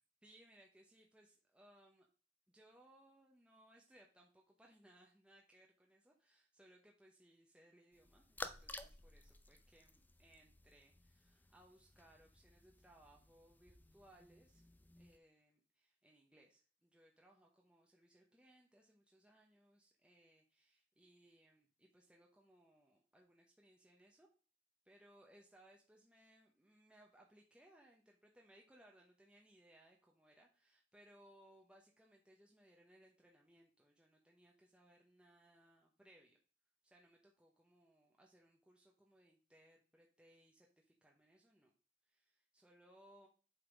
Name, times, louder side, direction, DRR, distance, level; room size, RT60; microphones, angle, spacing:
voice 1, 0.2-2.1 2.5-14.7 15.0-24.3 24.8-36.4 36.8-41.7 42.1-43.3, right 1 dB, 5° right, -1 dB, 0.9 m, -67 dB
sound 1, 7.9-15.2, left 2 dB, 10° left, 0.5 m, -55 dB
7.9 x 4.0 x 5.2 m, 0.38 s
head